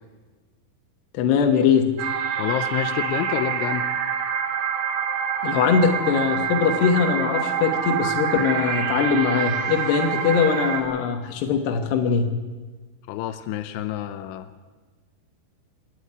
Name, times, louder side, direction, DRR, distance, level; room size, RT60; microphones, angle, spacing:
voice 1, 1.1-1.9 5.4-12.3, left 6 dB, 70° left, 4 dB, 3.2 m, -21 dB
sound 1, 2.0-10.8, right 7 dB, 75° right, 4.6 m, -26 dB
voice 2, 2.4-3.9 13.1-14.5, left 12 dB, 85° left, 10 dB, 3.2 m, -28 dB
26.5 x 10.5 x 9.7 m, 1.3 s
omnidirectional pair, 5.3 m